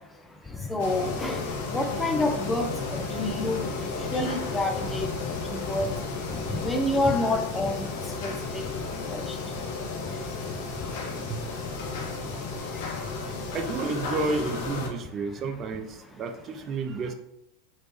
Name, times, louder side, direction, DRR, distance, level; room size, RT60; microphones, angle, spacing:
voice 1, 0.6-1.5 1.7-5.1 5.5-5.9 6.3-7.9 8.2-8.6 9.1-9.4, left 2 dB, 10° left, 3 dB, 0.5 m, -28 dB
sound 1, 0.8-14.9, left 4 dB, 65° left, 0.7 m, -33 dB
voice 2, 11.3-11.7 13.5-17.1, right 3 dB, 35° right, 6 dB, 0.5 m, -31 dB
3.1 x 3.0 x 3.0 m, 0.83 s
hypercardioid pair, 90°, 0 cm